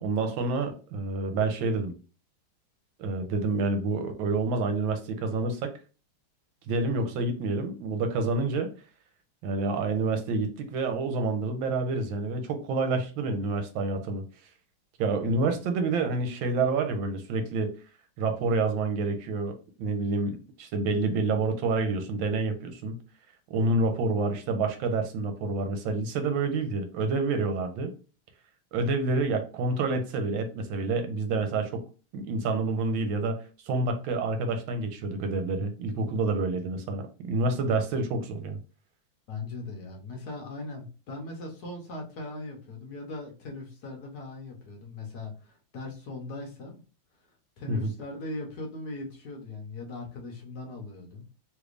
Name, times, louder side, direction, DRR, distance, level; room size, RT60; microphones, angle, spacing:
voice 1, 0.0-1.9 3.0-5.7 6.7-8.7 9.4-14.2 15.0-17.7 18.2-23.0 23.5-27.9 28.7-31.8 32.1-33.4 33.7-38.6 47.7-47.9, right 3 dB, 80° right, 6 dB, 1.4 m, -28 dB
voice 2, 15.2-15.5 39.3-46.8 47.6-51.2, left 2 dB, 60° left, 2 dB, 1.2 m, -39 dB
3.3 x 3.3 x 2.4 m, 0.34 s
omnidirectional pair, 2.2 m